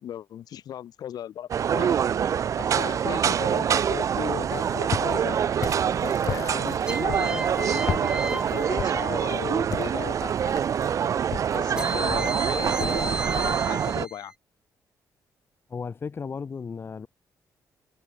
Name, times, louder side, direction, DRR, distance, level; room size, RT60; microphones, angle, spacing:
voice 1, 0.0-2.0 2.6-5.4 6.0-10.5 11.5-14.3, left 10 dB, 70° left, 4.5 m, -37 dB
sound 1, 1.5-14.1, right 8 dB, 50° right, 0.9 m, -25 dB
Walk footsteps, 4.4-13.6, left 8 dB, 55° left, 3.2 m, -37 dB
sound 2, 6.9-9.5 11.8-14.3, right 2 dB, 10° right, 1.9 m, -34 dB
voice 2, 15.7-17.1, left 5 dB, 35° left, 2.3 m, -34 dB
cardioid pair, 140°, 7 cm